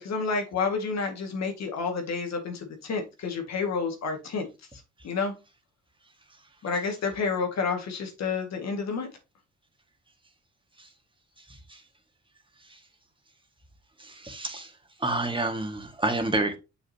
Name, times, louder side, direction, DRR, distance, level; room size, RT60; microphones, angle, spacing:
voice 1, 0.0-4.5 5.0-5.3 6.6-9.1, left 4 dB, 60° left, 2.0 m, -29 dB
voice 2, 14.0-14.7 15.0-16.6, right 2 dB, 15° right, 1.9 m, -28 dB
7.1 x 5.5 x 2.9 m
cardioid pair, 90°, 30 cm